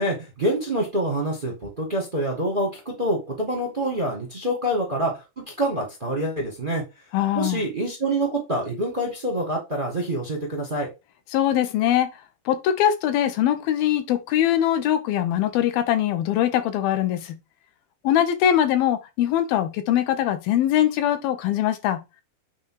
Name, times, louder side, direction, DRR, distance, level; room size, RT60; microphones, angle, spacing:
voice 1, 0.0-6.8 7.3-10.9, right 1 dB, 45° right, 0.6 m, -26 dB
voice 2, 7.1-7.6 11.3-12.1 12.5-17.4 18.0-22.0, left 11 dB, 75° left, 2.6 m, -22 dB
8.5 x 3.3 x 4.7 m
omnidirectional pair, 4.5 m